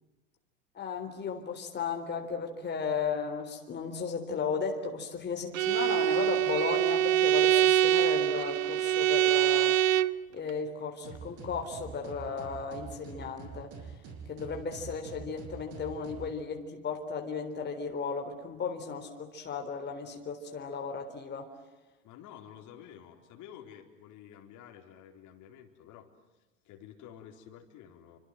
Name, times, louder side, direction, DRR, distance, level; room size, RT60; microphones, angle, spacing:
voice 1, 0.7-10.1 10.3-13.7 14.3-21.5, left 5 dB, 25° left, 4 dB, 4.0 m, -35 dB
Bowed string instrument, 5.5-10.2, right 12 dB, 70° right, 0.8 m, -24 dB
sound 1, 11.0-16.3, right 5 dB, 45° right, 7.3 m, -45 dB
voice 2, 22.0-26.1 26.6-28.2, left 9 dB, 45° left, 2 dB, 4.4 m, -50 dB
29.5 x 25.5 x 7.8 m, 1.1 s
hypercardioid pair, 95°, 41 cm